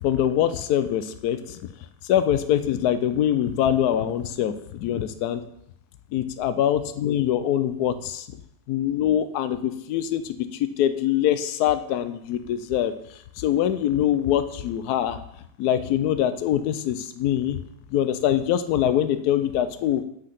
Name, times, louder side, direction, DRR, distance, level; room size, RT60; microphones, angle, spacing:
voice 1, 0.0-1.6 2.1-5.4 6.1-8.3 8.7-12.9 13.4-15.2 15.6-17.6 17.9-20.0, left 10 dB, 75° left, 11 dB, 1.1 m, -24 dB
6.6 x 6.3 x 5.8 m, 0.74 s
omnidirectional pair, 1.7 m